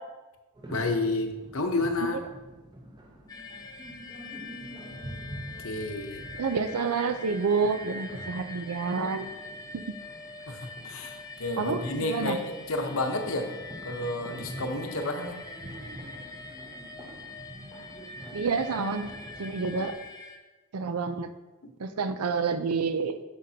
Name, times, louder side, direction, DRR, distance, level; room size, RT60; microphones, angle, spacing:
sound 1, 0.5-19.9, right 1 dB, 20° right, 0.7 m, -46 dB
voice 1, 0.7-2.2 5.6-6.2 10.5-13.5 13.8-15.4 21.6-21.7 22.1-22.2, left 2 dB, 65° left, 5 dB, 0.9 m, -30 dB
sound 2, 3.3-20.4, left 3 dB, 15° left, 0.5 m, -44 dB
voice 2, 6.4-9.3 9.7-9.9 11.6-12.4 18.3-19.1 19.4-19.9 20.7-21.3 21.8-23.3, right 5 dB, 85° right, 10 dB, 0.6 m, -29 dB
9.0 x 6.6 x 2.8 m, 1.1 s
head